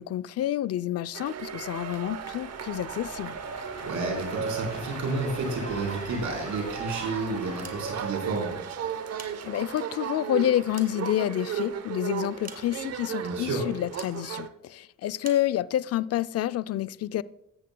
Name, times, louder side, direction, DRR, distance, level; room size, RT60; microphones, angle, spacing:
voice 1, 0.0-3.4 9.4-17.2, left 12 dB, 55° left, 0.4 m, -28 dB
sound 1, 1.1-9.6, left 2 dB, 25° left, 2.3 m, -45 dB
sound 2, 1.1-14.5, right 8 dB, 55° right, 0.9 m, -36 dB
voice 2, 3.8-8.5 13.2-13.6, right 3 dB, 70° right, 4.3 m, -31 dB
sound 3, 7.5-8.2 8.9-9.9 10.4-11.7 12.4-13.1 14.0-14.2 15.2-15.5, right 4 dB, 30° right, 1.9 m, -47 dB
15.5 x 11.0 x 2.2 m
cardioid pair, 90°, 30 cm